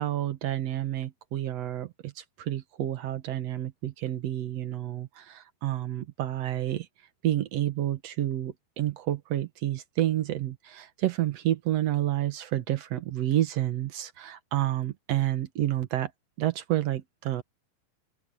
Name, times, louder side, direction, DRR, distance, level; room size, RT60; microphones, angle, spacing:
voice 1, 0.0-6.9 7.2-16.1 16.4-17.4, right 13 dB, 75° right, 1.5 m, -29 dB
omnidirectional pair, 4.7 m